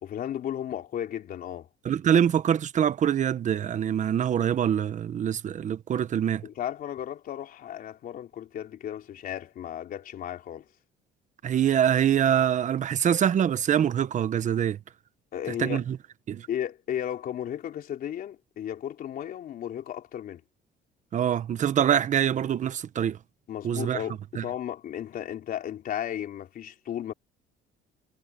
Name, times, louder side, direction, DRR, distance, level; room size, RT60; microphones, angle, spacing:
voice 1, 0.0-1.7 6.4-10.7 15.3-15.8 16.5-20.4 23.5-27.1, left 10 dB, 60° left, 3.5 m, -34 dB
voice 2, 1.8-6.4 11.4-14.8 15.6-16.0 16.3-16.5 21.1-23.2 23.6-24.0 24.3-24.4, right 9 dB, 45° right, 1.2 m, -24 dB
cardioid pair, 110°, 17 cm